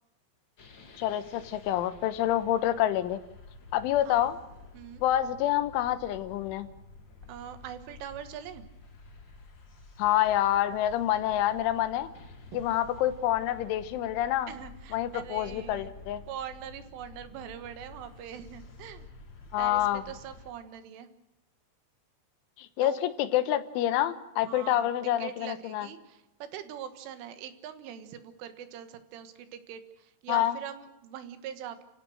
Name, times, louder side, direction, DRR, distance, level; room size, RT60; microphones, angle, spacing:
sound 1, 0.6-20.5, left 3 dB, 40° left, 1.7 m, -50 dB
voice 1, 1.0-3.2 3.7-4.4 5.0-6.7 10.0-12.1 12.5-14.5 14.9-16.2 19.5-20.0 22.6-25.9 30.3-30.6, left 12 dB, 85° left, 11 dB, 3.5 m, -27 dB
voice 2, 4.0-4.4 4.7-5.0 7.3-8.7 12.5-12.6 14.5-15.9 16.3-19.1 19.6-21.1 22.8-23.0 24.4-24.9 25.2-31.8, right 9 dB, 90° right, 9 dB, 4.0 m, -42 dB
30.0 x 16.0 x 6.4 m, 0.91 s
omnidirectional pair, 5.5 m